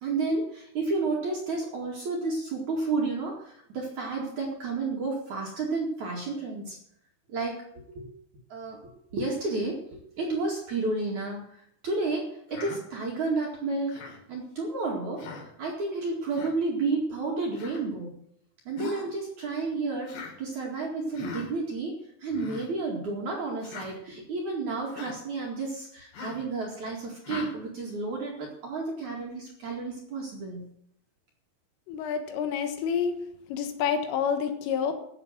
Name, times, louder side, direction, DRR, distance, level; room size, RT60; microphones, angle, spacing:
voice 1, 0.0-6.8 7.3-8.1 8.5-8.8 9.1-14.0 14.3-18.1 18.7-30.7, right 3 dB, 50° right, -1 dB, 2.7 m, -31 dB
Human voice, 12.5-12.8 13.9-14.2 15.2-15.5 16.3-16.5 17.6-17.8 18.8-19.1 20.1-20.3 21.1-21.5 22.3-22.7 23.6-23.9 24.9-25.2 26.1-26.5 27.2-27.5, left 3 dB, 60° left, 4.7 m, -39 dB
voice 2, 31.9-33.2 33.5-34.9, left 7 dB, 80° left, 7 dB, 3.9 m, -28 dB
14.0 x 7.5 x 7.4 m, 0.72 s
omnidirectional pair, 5.9 m